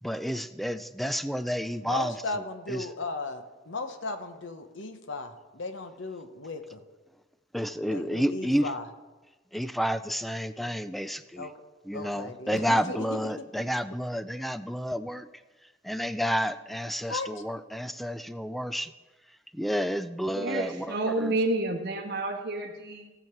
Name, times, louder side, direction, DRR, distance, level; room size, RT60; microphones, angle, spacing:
voice 1, 0.0-2.9 7.5-8.7 9.5-11.5 11.8-15.3 15.8-18.9 19.5-21.3, equal, ahead, 13 dB, 0.4 m, -30 dB
voice 2, 1.8-6.8 7.9-8.8 11.4-11.5 11.9-13.1 17.1-17.3, left 3 dB, 75° left, 8 dB, 1.0 m, -36 dB
voice 3, 20.3-23.1, right 2 dB, 60° right, 2 dB, 1.4 m, -30 dB
16.5 x 7.1 x 4.5 m, 1.2 s
head